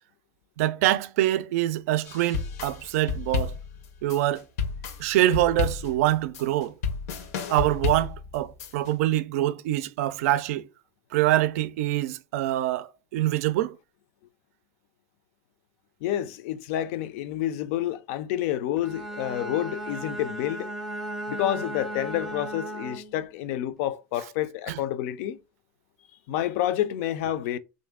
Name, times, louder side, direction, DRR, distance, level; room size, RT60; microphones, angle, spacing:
voice 1, 0.6-3.6 4.0-4.4 5.0-6.7 7.5-10.7 11.1-13.8 24.7-24.8, right 14 dB, 80° right, 0.4 m, -25 dB
sound 1, 2.1-8.9, left 6 dB, 90° left, 0.8 m, -31 dB
voice 2, 16.0-20.7 21.3-25.4 26.3-27.6, left 12 dB, 70° left, 0.4 m, -29 dB
Bowed string instrument, 18.8-23.2, right 1 dB, 5° right, 0.4 m, -36 dB
3.2 x 2.6 x 3.5 m
supercardioid pair, 150°, 8 cm